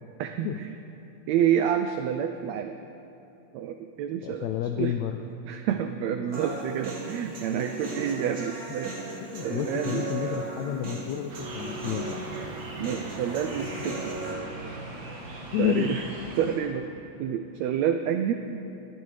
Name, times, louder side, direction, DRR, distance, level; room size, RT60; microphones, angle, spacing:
voice 1, 0.2-0.7 1.3-2.7 3.5-4.5 4.8-4.9 5.4-8.9 9.3-10.1 12.8-14.1 15.6-16.0 16.4-18.3, right 9 dB, 90° right, 7 dB, 1.5 m, -28 dB
voice 2, 4.2-5.2 9.3-12.3 15.5-15.9, left 11 dB, 85° left, 6 dB, 1.6 m, -30 dB
Human voice, 6.3-14.3, right 2 dB, 45° right, 2.8 m, -36 dB
sound 1, 11.3-16.6, right 2 dB, 65° right, 3.4 m, -39 dB
21.0 x 13.5 x 3.3 m, 2.7 s
omnidirectional pair, 3.7 m